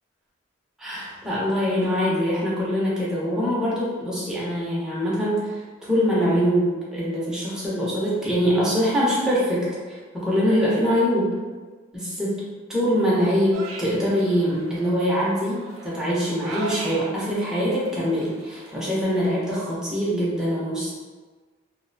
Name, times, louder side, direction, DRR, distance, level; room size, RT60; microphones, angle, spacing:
voice 1, 0.8-11.3 11.9-20.9, equal, 5° right, -8 dB, 0.6 m, -23 dB
sound 1, 13.5-18.7, right 2 dB, 85° right, 0.4 m, -39 dB
2.5 x 2.0 x 2.6 m, 1.4 s
head